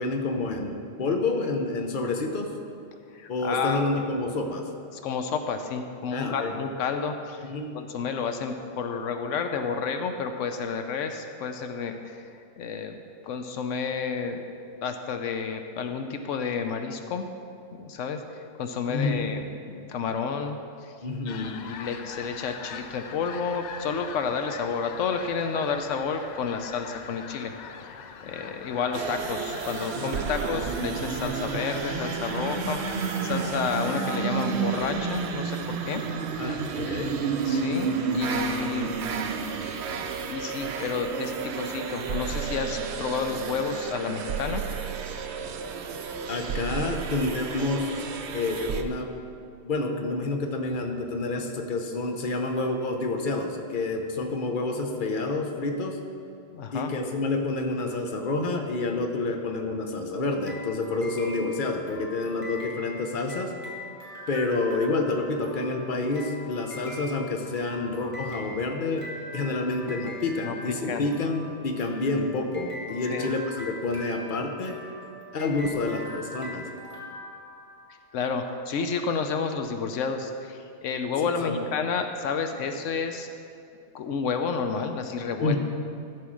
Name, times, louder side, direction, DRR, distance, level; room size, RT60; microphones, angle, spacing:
voice 1, 0.0-2.5 3.3-4.6 6.1-6.5 7.4-7.7 18.9-19.3 21.0-21.5 29.9-30.3 36.4-37.1 46.3-48.0 48.3-49.1 49.6-56.0 56.7-63.5 64.3-69.0 69.3-74.8 75.3-76.7 81.4-81.6 85.4-85.6, left 3 dB, 45° left, 3 dB, 1.0 m, -28 dB
voice 2, 3.1-3.8 4.9-7.5 7.7-12.2 12.6-13.0 13.2-14.4 14.8-17.3 17.8-18.2 18.6-20.6 20.8-20.9 21.2-27.5 28.2-36.0 36.4-36.5 36.8-37.0 37.4-39.0 39.4-40.0 40.2-44.6 56.5-56.9 70.4-70.6 70.9-71.1 73.1-73.3 78.1-83.3 83.9-85.6, left 5 dB, 85° left, 6 dB, 1.0 m, -30 dB
sound 1, 21.3-34.2, left 6 dB, 65° left, 0.4 m, -42 dB
sound 2, 28.9-48.8, right 6 dB, 65° right, 0.9 m, -31 dB
sound 3, 60.4-78.1, left 1 dB, 25° left, 1.7 m, -42 dB
13.5 x 4.8 x 6.3 m, 2.5 s
omnidirectional pair, 1.3 m